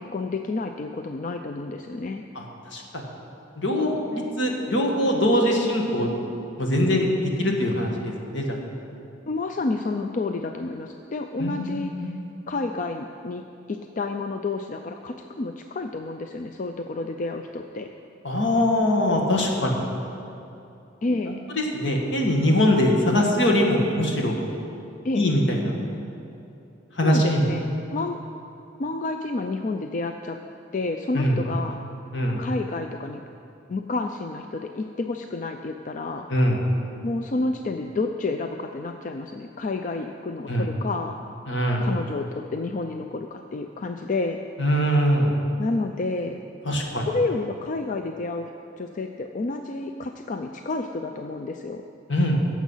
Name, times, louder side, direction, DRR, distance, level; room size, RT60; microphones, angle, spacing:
voice 1, 0.0-2.2 9.3-12.1 12.5-13.4 13.7-17.9 21.0-21.4 25.0-25.2 27.0-27.7 27.9-28.2 28.8-30.4 30.7-31.8 32.4-33.2 33.7-36.3 37.0-41.2 41.8-44.4 45.6-46.4 47.1-48.5 48.8-51.8, left 3 dB, 45° left, 5 dB, 0.4 m, -30 dB
voice 2, 2.7-3.0 3.6-6.1 6.6-7.1 7.4-8.6 11.4-12.1 18.2-19.8 21.3-21.4 21.7-24.4 25.1-25.7 27.0-27.5 31.1-31.4 32.1-32.4 36.3-36.6 40.5-40.7 41.5-41.9 44.6-45.3 46.7-47.1 52.1-52.4, left 1 dB, 75° left, 1 dB, 1.8 m, -22 dB
16.0 x 7.3 x 5.6 m, 2.8 s
head